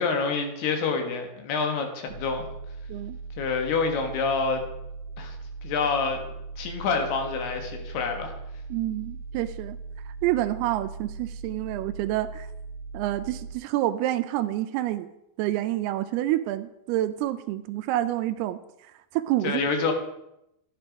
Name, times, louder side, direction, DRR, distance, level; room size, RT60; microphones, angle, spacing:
voice 1, 0.0-2.5 3.4-4.6 5.2-5.4 5.6-6.2 6.6-8.3 19.4-19.9, left 4 dB, 75° left, 5 dB, 3.5 m, -27 dB
sound 1, 2.1-13.5, right 4 dB, 35° left, 2.7 m, -39 dB
voice 2, 8.7-9.8 10.2-12.5 12.9-15.1 15.4-18.6 19.1-19.6, right 14 dB, 80° right, 11 dB, 2.4 m, -28 dB
13.0 x 8.9 x 5.2 m, 0.86 s
omnidirectional pair, 4.8 m